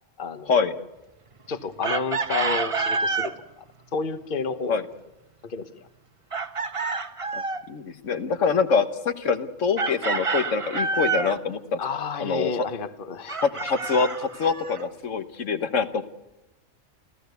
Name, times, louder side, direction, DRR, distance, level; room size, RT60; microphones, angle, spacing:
voice 1, 0.2-0.5 1.5-3.6 3.9-4.8 5.4-5.7 11.8-13.4, left 5 dB, 45° left, 11 dB, 1.3 m, -30 dB
Chicken rooster, 1.8-3.4 6.3-7.7 9.8-11.4 13.3-14.8, right 4 dB, 30° right, 0.9 m, -28 dB
voice 2, 7.3-11.8 12.2-12.6 13.4-16.1, left 5 dB, 80° left, 10 dB, 1.6 m, -25 dB
29.0 x 15.0 x 8.2 m, 0.97 s
omnidirectional pair, 1.3 m